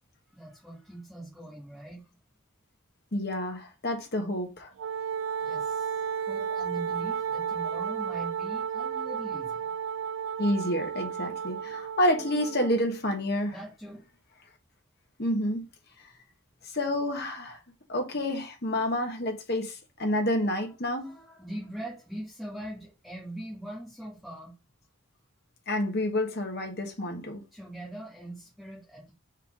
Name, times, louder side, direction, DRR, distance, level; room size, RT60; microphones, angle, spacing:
voice 1, 0.3-2.0 5.4-9.7 13.5-14.0 20.6-24.5 27.5-29.1, right 1 dB, ahead, 2.2 m, -42 dB
voice 2, 3.1-4.7 10.4-13.5 15.2-15.6 16.6-17.6 17.9-21.1 25.7-27.4, left 1 dB, 50° left, 1.5 m, -29 dB
Wind instrument woodwind instrument, 4.8-12.8, right 7 dB, 65° right, 0.4 m, -33 dB
5.6 x 4.6 x 3.9 m
head